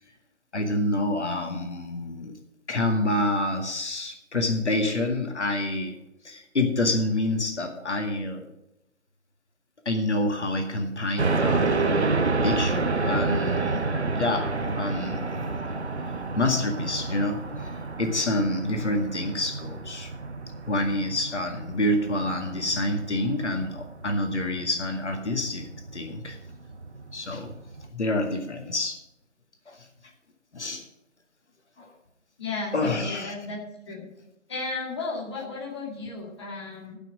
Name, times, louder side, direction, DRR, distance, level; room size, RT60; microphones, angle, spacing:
voice 1, 0.5-2.3 2.7-5.9 6.2-8.5 9.9-13.8 14.2-15.6 16.4-20.1 20.7-26.4 27.1-27.5 27.9-29.0 29.7-29.8 30.5-30.8 31.8-31.9 32.7-33.3, left 1 dB, 65° left, 3 dB, 2.0 m, -28 dB
sound 1, 11.2-27.9, right 3 dB, 60° right, 1.2 m, -30 dB
voice 2, 32.4-34.1 34.5-37.0, left 3 dB, 20° left, -4 dB, 2.1 m, -34 dB
13.5 x 6.2 x 6.2 m, 0.87 s
figure-of-eight pair, 170°, 38 cm